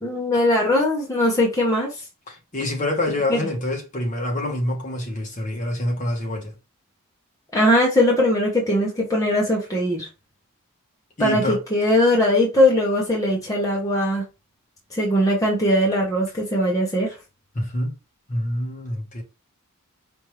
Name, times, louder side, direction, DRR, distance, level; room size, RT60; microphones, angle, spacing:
voice 1, 0.0-2.0 3.3-3.4 7.5-10.1 11.2-14.2 14.9-17.2, left 1 dB, 15° left, 1.0 m, -20 dB
voice 2, 2.3-6.5 11.2-11.6 17.5-17.9 18.3-19.2, left 1 dB, 35° left, 1.3 m, -26 dB
5.2 x 2.6 x 3.2 m
head